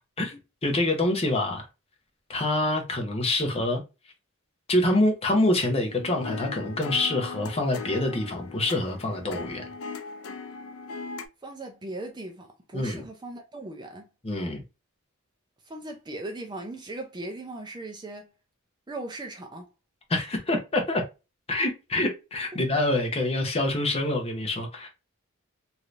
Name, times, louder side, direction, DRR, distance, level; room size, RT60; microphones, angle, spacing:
voice 1, 0.2-1.7 2.3-3.8 4.7-9.6 12.7-13.0 14.2-14.6 20.1-21.0 21.5-24.9, left 1 dB, 30° left, 0.8 m, -26 dB
sound 1, 5.6-11.3, left 5 dB, 75° left, 0.5 m, -39 dB
voice 2, 11.4-14.1 15.6-18.3 18.9-19.7 22.5-22.6, right 2 dB, 20° right, 0.5 m, -38 dB
3.2 x 2.8 x 2.5 m
head